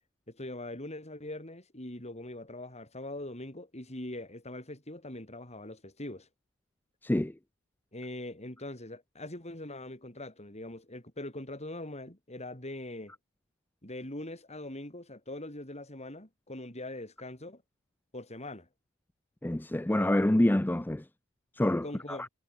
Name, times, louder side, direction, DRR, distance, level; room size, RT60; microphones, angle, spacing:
voice 1, 0.3-6.3 7.9-13.1 13.8-17.6 18.1-18.7 21.8-22.3, left 1 dB, 30° left, 5.8 m, -42 dB
voice 2, 7.0-7.3 19.4-21.1 21.5-22.3, left 1 dB, 10° left, 0.5 m, -27 dB
head